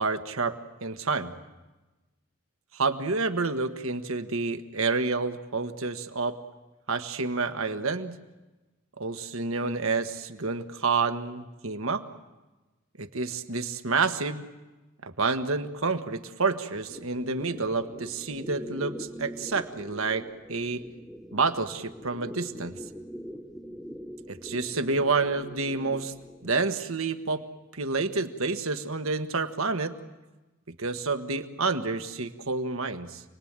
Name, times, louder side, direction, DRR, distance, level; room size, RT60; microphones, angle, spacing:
voice 1, 0.0-1.3 2.7-6.4 6.9-8.2 9.0-12.0 13.0-14.5 15.0-20.8 21.3-22.8 24.3-26.1 26.4-27.4 27.7-29.9 30.7-33.2, right 4 dB, 85° right, 8 dB, 1.5 m, -29 dB
sound 1, 16.9-26.8, equal, ahead, 0.9 m, -43 dB
28.5 x 20.5 x 8.9 m, 1.1 s
head